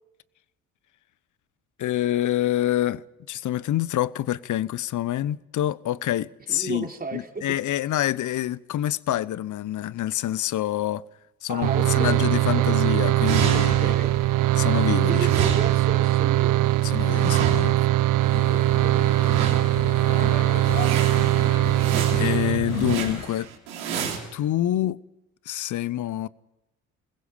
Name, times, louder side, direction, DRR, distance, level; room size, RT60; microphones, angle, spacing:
voice 1, 1.8-11.0 11.4-13.9 14.6-15.3 16.8-17.8 21.7-23.5 24.3-25.0 25.5-26.3, left 13 dB, 45° left, 0.8 m, -27 dB
voice 2, 6.5-7.6 11.5-12.7 13.5-14.2 15.1-16.6, right 3 dB, 20° right, 3.4 m, -34 dB
sound 1, 11.6-23.0, right 15 dB, 50° right, 0.7 m, -21 dB
sound 2, 13.2-14.5 14.8-18.0 19.0-19.9 20.3-20.4 20.6-24.2, right 7 dB, 75° right, 3.6 m, -32 dB
sound 3, 18.2-23.2, left 7 dB, 85° left, 1.7 m, -35 dB
27.5 x 21.5 x 5.1 m
figure-of-eight pair, 50°, 41 cm